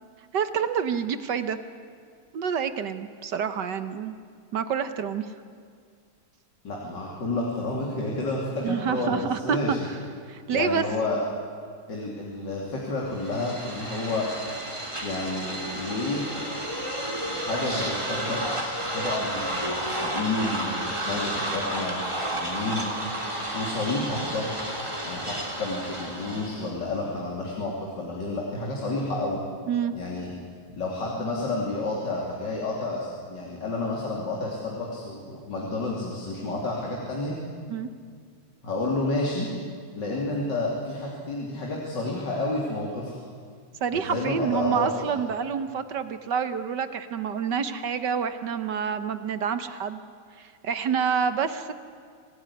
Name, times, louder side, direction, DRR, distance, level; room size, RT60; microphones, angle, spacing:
voice 1, 0.3-1.6 2.3-4.2 4.5-5.3 8.6-9.8 10.3-10.8 29.7-29.9 37.7-37.9 43.8-50.0 50.4-51.7, right 7 dB, 60° right, 11 dB, 1.5 m, -28 dB
voice 2, 6.6-9.9 10.5-11.2 11.9-14.3 15.0-16.2 17.3-22.9 23.2-24.5 25.0-29.4 29.9-30.3 30.7-37.4 38.6-39.5 40.0-43.2 43.9-45.2, left 2 dB, 55° left, -3 dB, 3.6 m, -30 dB
sound 1, 13.1-26.7, right 1 dB, 15° right, 3.2 m, -31 dB
25.5 x 18.0 x 9.9 m, 2.1 s
omnidirectional pair, 2.3 m